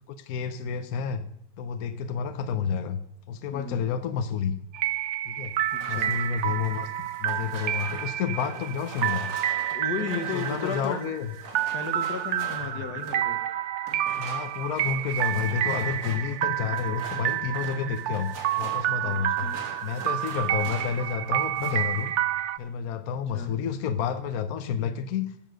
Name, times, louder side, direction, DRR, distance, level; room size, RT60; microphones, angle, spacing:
voice 1, 0.1-1.3 1.6-3.0 3.3-4.5 5.2-5.6 5.9-6.9 7.2-9.3 10.0-11.3 12.6-12.8 14.2-19.5 19.8-22.1 22.6-25.3, left 7 dB, 70° left, 10 dB, 1.2 m, -30 dB
sound 1, 4.7-22.6, right 12 dB, 65° right, 0.7 m, -29 dB
sound 2, 5.6-13.3 13.8-21.1 21.4-22.0, right 3 dB, 80° right, 2.4 m, -43 dB
voice 2, 5.7-6.2 9.7-11.1 11.7-13.4 19.0-19.7 23.3-23.6, left 5 dB, 85° left, 7 dB, 1.9 m, -34 dB
13.0 x 7.3 x 6.3 m, 0.74 s
omnidirectional pair, 1.7 m